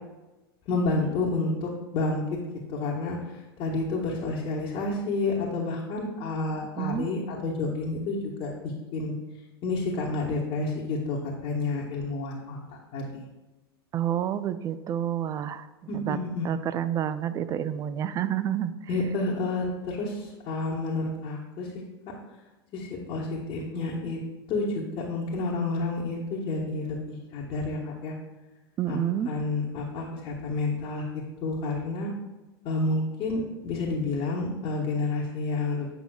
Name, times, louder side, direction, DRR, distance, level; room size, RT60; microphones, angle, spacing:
voice 1, 0.7-2.2 2.7-8.5 8.9-9.1 9.6-12.6 12.9-13.2 15.9-16.5 18.9-21.7 22.7-24.2 24.5-28.1 28.9-29.0 29.2-31.0 31.4-32.1 32.6-35.9, left 3 dB, 40° left, -5 dB, 1.2 m, -30 dB
voice 2, 6.8-7.1 13.9-15.7 15.9-16.2 16.4-18.7 28.8-29.3, right 10 dB, 25° right, 13 dB, 0.3 m, -29 dB
7.7 x 5.4 x 2.3 m, 1.1 s
hypercardioid pair, 100°, 13 cm